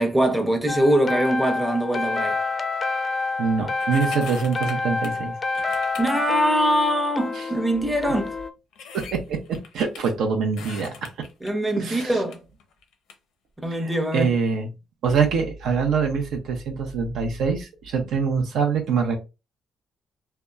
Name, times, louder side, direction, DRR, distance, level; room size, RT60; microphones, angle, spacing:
voice 1, 0.0-2.4 6.0-8.3 11.4-12.4 13.6-14.3, equal, 10° right, 0.6 m, -22 dB
sound 1, 0.7-8.5, left 3 dB, 35° left, 0.4 m, -28 dB
voice 2, 3.4-5.3 7.4-7.5 8.9-9.4 9.7-10.9 11.8-12.1 13.7-14.7 15.0-19.2, right 5 dB, 80° right, 0.6 m, -24 dB
sound 2, 3.8-5.3 5.5-6.1 6.9-7.0 7.8-7.9 8.1-8.2 8.7-10.0 10.5-11.5 11.9-13.1 13.7-13.8, left 6 dB, 90° left, 0.5 m, -41 dB
2.8 x 2.2 x 2.3 m
cardioid pair, 90°, 0 cm